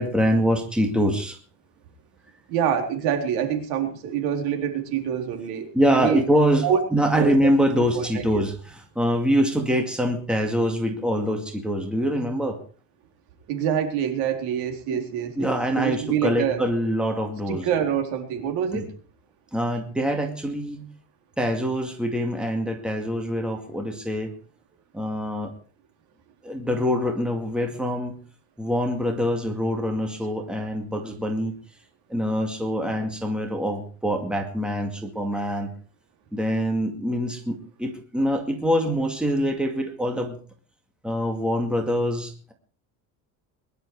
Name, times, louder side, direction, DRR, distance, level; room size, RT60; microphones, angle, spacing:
voice 1, 0.0-1.4 5.7-12.6 14.9-15.0 15.4-17.7 18.7-18.9 19.5-20.9 21.4-24.3 24.9-25.5 26.4-28.2 28.6-31.5 32.1-35.7 36.3-40.4 41.0-42.5, equal, ahead, 3 dB, 2.2 m, -24 dB
voice 2, 2.5-6.2 6.6-6.8 7.2-7.3 7.9-8.4 13.5-16.6 17.5-18.9, right 8 dB, 80° right, 5 dB, 4.0 m, -26 dB
21.5 x 11.5 x 4.8 m, 0.41 s
cardioid pair, 170°, 39 cm